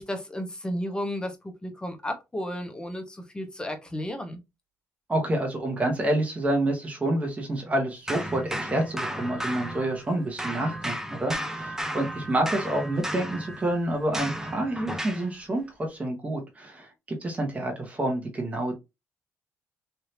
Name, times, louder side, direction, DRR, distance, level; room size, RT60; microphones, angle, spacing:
voice 1, 0.0-1.3 1.6-4.4, equal, 15° left, 1.0 m, -33 dB
voice 2, 5.1-18.8, right 1 dB, 25° right, 1.1 m, -28 dB
sound 1, 8.1-10.1 10.4-15.3, equal, 10° right, 0.7 m, -34 dB
3.3 x 2.7 x 2.8 m
cardioid pair, 85°, 6 cm